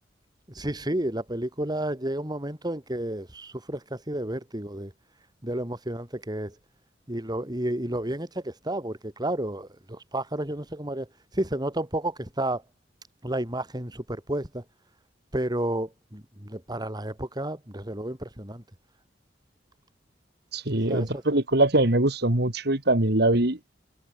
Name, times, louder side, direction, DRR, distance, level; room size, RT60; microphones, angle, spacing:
voice 1, 0.5-4.9 5.4-6.6 7.1-11.1 11.3-12.6 13.2-14.6 15.3-18.6 20.8-21.2, right 1 dB, 25° right, 2.8 m, -31 dB
voice 2, 20.5-23.6, right 2 dB, 65° right, 2.8 m, -22 dB
head